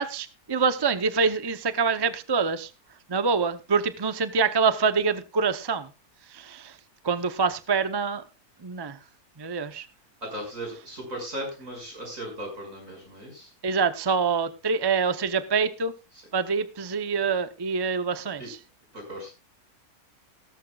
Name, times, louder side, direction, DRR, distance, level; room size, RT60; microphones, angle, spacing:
voice 1, 0.0-2.7 3.1-5.9 6.3-6.8 7.0-8.2 8.6-9.0 9.4-9.9 13.6-15.9 16.3-18.6, right 5 dB, 30° right, 11 dB, 0.5 m, -25 dB
voice 2, 10.2-13.5 18.4-18.5 18.9-19.3, right 1 dB, 60° right, 2 dB, 6.6 m, -37 dB
17.0 x 14.0 x 2.4 m, 0.28 s
omnidirectional pair, 1.6 m